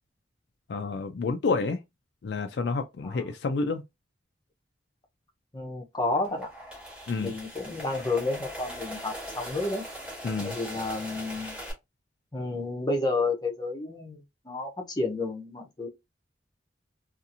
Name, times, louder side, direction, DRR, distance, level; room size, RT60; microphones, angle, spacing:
voice 1, 0.7-1.8 2.2-3.8 7.1-7.3 10.2-10.6, left 4 dB, 65° left, 0.4 m, -29 dB
voice 2, 5.5-6.5 7.2-9.8 10.4-11.6 12.3-15.9, left 2 dB, 20° left, 0.6 m, -31 dB
sound 1, 6.1-11.7, equal, 5° right, 1.2 m, -40 dB
2.7 x 2.5 x 2.5 m
head